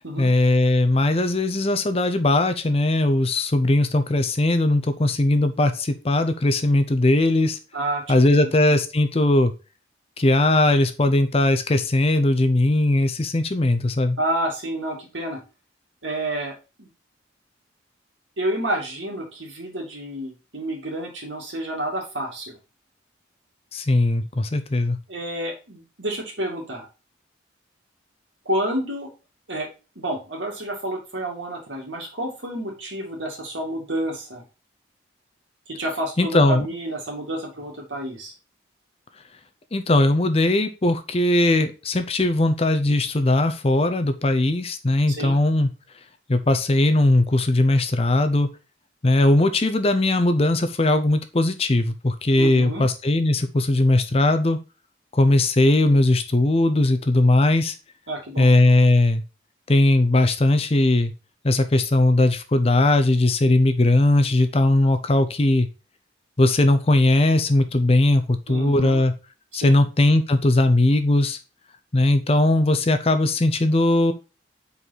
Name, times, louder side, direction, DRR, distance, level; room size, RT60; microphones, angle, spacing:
voice 1, 0.2-7.6 8.1-9.5 10.2-14.2 23.7-25.0 36.2-36.7 39.7-45.7 46.3-48.5 49.0-54.6 55.1-57.7 58.4-59.2 59.7-61.1 61.4-65.7 66.4-69.1 69.5-71.4 71.9-74.1, left 2 dB, 30° left, 10 dB, 0.6 m, -19 dB
voice 2, 7.7-8.5 14.2-15.4 16.0-16.9 18.4-22.6 25.1-26.9 28.5-29.1 29.5-29.7 30.0-34.4 35.7-38.3 45.1-45.4 52.4-52.8 58.1-58.5 68.5-69.0 69.5-69.8, right 1 dB, 80° right, 0 dB, 2.3 m, -29 dB
5.7 x 4.7 x 4.1 m, 0.31 s
head